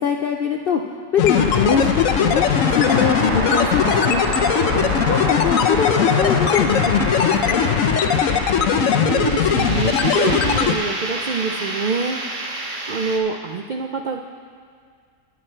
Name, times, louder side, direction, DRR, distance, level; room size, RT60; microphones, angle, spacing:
voice 1, 0.0-0.8 1.1-2.4 2.7-4.2 4.9-7.6, left 7 dB, 60° left, 3 dB, 0.6 m, -22 dB
sound 1, 1.2-10.7, left 8 dB, 85° left, 1.0 m, -19 dB
sound 2, 1.3-13.2, right 2 dB, 40° right, 1.1 m, -28 dB
voice 2, 4.7-5.0 8.8-12.2 12.9-14.2, right 5 dB, 65° right, 4 dB, 0.4 m, -26 dB
18.5 x 6.5 x 4.4 m, 2.1 s
omnidirectional pair, 1.4 m